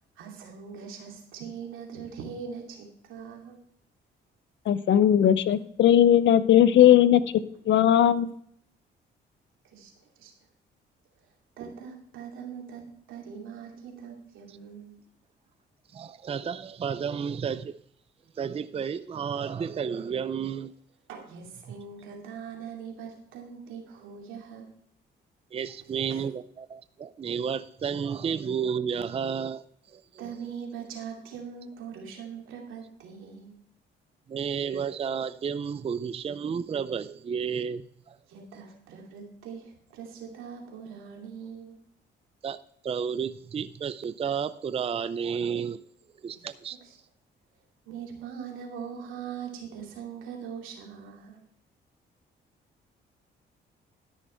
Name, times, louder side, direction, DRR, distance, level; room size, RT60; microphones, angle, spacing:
voice 1, 0.2-3.6 9.6-10.3 11.6-15.0 21.1-24.7 30.2-33.6 38.3-41.8 46.3-46.5 46.8-47.0 47.8-51.4, right 7 dB, 90° right, 0 dB, 2.7 m, -41 dB
voice 2, 4.7-7.2 7.7-8.3, left 10 dB, 70° left, 14 dB, 0.7 m, -18 dB
voice 3, 15.9-17.8 18.4-20.7 25.5-30.2 34.3-38.2 42.4-45.8 46.2-46.8, right 7 dB, 30° right, 14 dB, 0.4 m, -32 dB
12.5 x 6.5 x 4.4 m, 0.67 s
cardioid pair, 90°, 20 cm